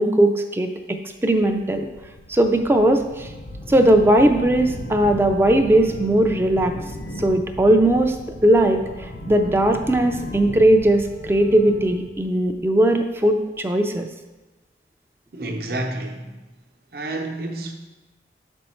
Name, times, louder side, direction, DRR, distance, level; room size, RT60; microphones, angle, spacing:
voice 1, 0.0-1.9 2.3-3.3 3.7-6.7 7.2-8.2 8.4-14.1, right 1 dB, 15° right, 5 dB, 0.4 m, -18 dB
sound 1, 1.3-13.3, left 1 dB, 80° left, 0.7 m, -36 dB
voice 2, 15.3-16.4 16.9-17.7, right 2 dB, 55° right, 3 dB, 0.8 m, -29 dB
7.0 x 5.3 x 4.4 m, 1.1 s
head